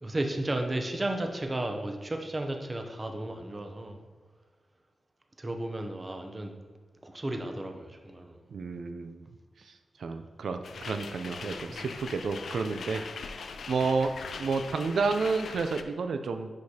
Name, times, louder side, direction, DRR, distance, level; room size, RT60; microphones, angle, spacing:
voice 1, 0.0-4.0 5.4-6.5 7.0-8.4 11.7-11.8, right 1 dB, 20° right, 5 dB, 0.6 m, -33 dB
voice 2, 8.5-9.3 9.6-9.7 10.0-13.0 13.4-14.1 14.4-16.6, right 4 dB, 80° right, 8 dB, 0.4 m, -30 dB
sound 1, 10.6-15.8, left 5 dB, 85° left, 0.4 m, -41 dB
10.5 x 4.9 x 2.8 m, 1.4 s
wide cardioid pair, 165°, 0 cm